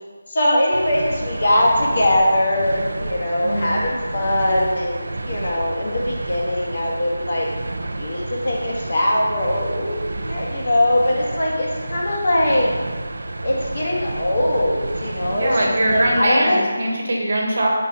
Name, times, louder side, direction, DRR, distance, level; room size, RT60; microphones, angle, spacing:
voice 1, 0.3-7.5 8.0-12.7 13.4-16.7, left 1 dB, 45° left, -3 dB, 1.3 m, -21 dB
sound 1, 0.7-16.2, right 2 dB, 70° right, 0.4 m, -30 dB
voice 2, 15.3-17.7, right 1 dB, 45° right, -1 dB, 1.2 m, -21 dB
4.9 x 3.7 x 5.3 m, 1.4 s
figure-of-eight pair, 175°, 0 cm